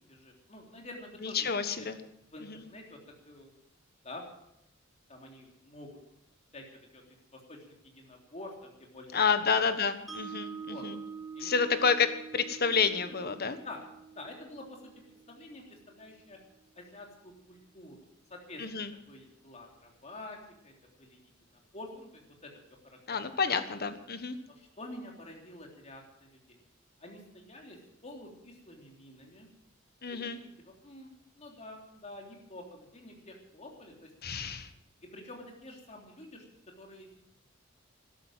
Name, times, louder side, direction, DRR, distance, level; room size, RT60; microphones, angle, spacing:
voice 1, 0.1-1.9 2.3-3.0 3.3-3.6 4.0-4.3 5.1-5.9 6.5-6.6 6.9-7.0 7.3-9.2 9.5-9.6 10.7-10.8 11.3-11.8 13.6-13.8 14.1-14.9 15.3-16.4 16.8-20.4 20.6-20.7 21.0-21.2 21.7-22.5 23.1-23.2 24.5-26.6 27.0-27.8 28.0-29.5 30.1-31.1 31.3-34.1 35.1-36.4 36.8-37.2, left 2 dB, 35° left, 1 dB, 3.4 m, -48 dB
voice 2, 1.2-2.0 2.5-2.6 9.1-11.0 11.4-13.6 18.6-18.9 23.1-24.4 30.0-30.4 34.2-34.7, left 5 dB, 50° left, 10 dB, 1.3 m, -29 dB
Mallet percussion, 10.1-16.2, right 6 dB, ahead, 3.0 m, -46 dB
13.0 x 12.5 x 7.4 m, 0.79 s
head